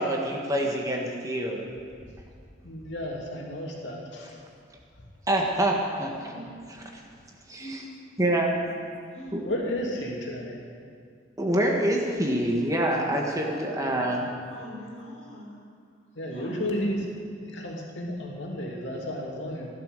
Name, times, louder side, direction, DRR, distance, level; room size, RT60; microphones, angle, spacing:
voice 1, 0.0-1.6 5.3-6.1 7.5-7.8 8.2-8.5 9.3-9.4 11.4-14.2, right 1 dB, 20° right, 0 dB, 1.5 m, -26 dB
voice 2, 2.6-4.3 9.4-10.6 13.4-14.1 16.1-17.0 17.5-19.7, left 1 dB, 80° left, -2 dB, 2.7 m, -33 dB
voice 3, 7.6-7.9 8.8-8.9 9.1-9.4 14.5-15.6 16.2-17.0, equal, 40° left, -3 dB, 4.2 m, -43 dB
16.0 x 11.5 x 6.7 m, 2.2 s
head